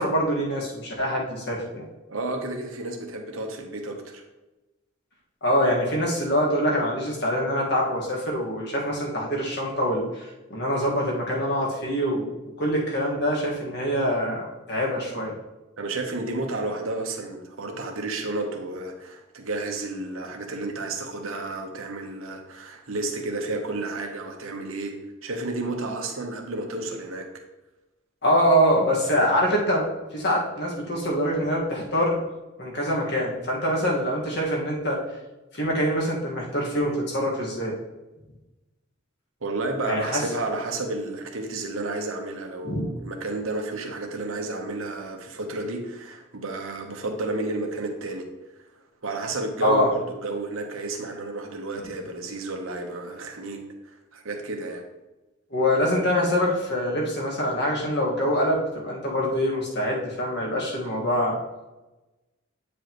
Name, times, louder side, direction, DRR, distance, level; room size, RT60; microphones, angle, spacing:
voice 1, 0.0-1.8 5.4-12.3 12.6-15.3 28.2-29.9 30.1-32.2 32.6-35.0 35.5-37.8 39.9-40.2 42.6-42.9 49.6-49.9 51.8-51.9 55.5-61.4, equal, 50° left, -3 dB, 1.7 m, -24 dB
voice 2, 2.1-4.2 15.8-24.9 25.2-27.3 39.4-48.3 49.0-53.6 54.1-54.8, right 2 dB, 75° right, 3 dB, 1.1 m, -31 dB
9.0 x 5.1 x 3.1 m, 1.1 s
head